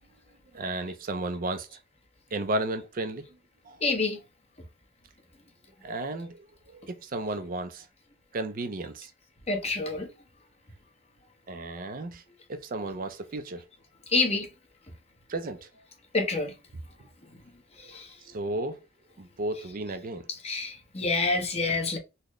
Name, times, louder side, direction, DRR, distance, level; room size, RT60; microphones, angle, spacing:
voice 1, 0.5-1.7 2.3-3.3 3.7-3.8 5.8-6.5 6.7-7.9 8.3-9.1 11.5-12.2 12.5-13.6 15.3-15.7 18.2-18.8 19.2-20.3, right 2 dB, 45° right, 0.5 m, -33 dB
voice 2, 3.8-4.2 9.5-10.1 14.1-14.5 16.1-16.5 17.8-18.2 20.3-22.0, left 3 dB, 35° left, 1.0 m, -27 dB
4.0 x 2.1 x 3.0 m
head